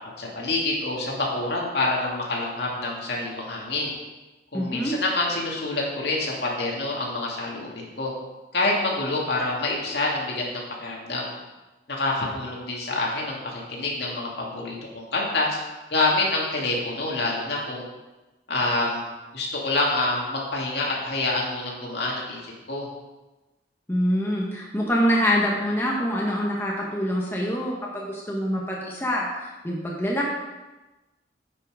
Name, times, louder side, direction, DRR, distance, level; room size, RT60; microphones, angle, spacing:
voice 1, 0.2-3.9 4.5-8.1 8.5-11.3 11.9-15.6 15.9-17.8 18.5-19.0 19.3-22.9, left 2 dB, 65° left, -2 dB, 2.2 m, -27 dB
voice 2, 4.5-4.9 23.9-30.3, equal, 10° left, -3 dB, 1.1 m, -25 dB
9.8 x 5.8 x 4.9 m, 1.1 s
head